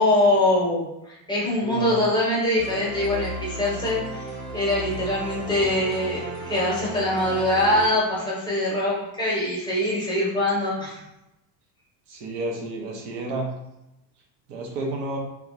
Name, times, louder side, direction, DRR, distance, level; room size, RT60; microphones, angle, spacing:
voice 1, 0.0-6.2 6.5-11.0, left 1 dB, 10° left, -6 dB, 0.7 m, -23 dB
voice 2, 1.6-2.0 12.1-13.5 14.5-15.2, right 2 dB, 85° right, 0 dB, 1.0 m, -30 dB
sound 1, 2.6-7.9, right 2 dB, 25° right, 0.4 m, -35 dB
2.6 x 2.4 x 3.0 m, 0.88 s
cardioid pair, 145°, 49 cm